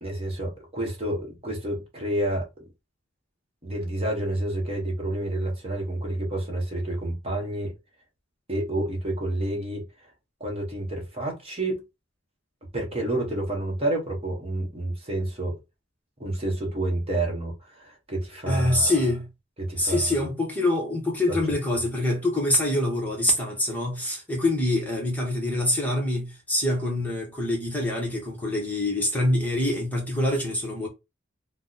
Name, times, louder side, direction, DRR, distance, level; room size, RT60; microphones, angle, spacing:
voice 1, 0.0-2.6 3.6-7.8 8.5-10.1 10.4-11.8 12.7-15.6 16.2-18.9 19.6-20.1 21.3-21.4, right 1 dB, 30° right, 0.9 m, -29 dB
voice 2, 18.5-19.3 19.8-30.9, left 1 dB, 10° left, 0.8 m, -25 dB
2.8 x 2.1 x 3.7 m
head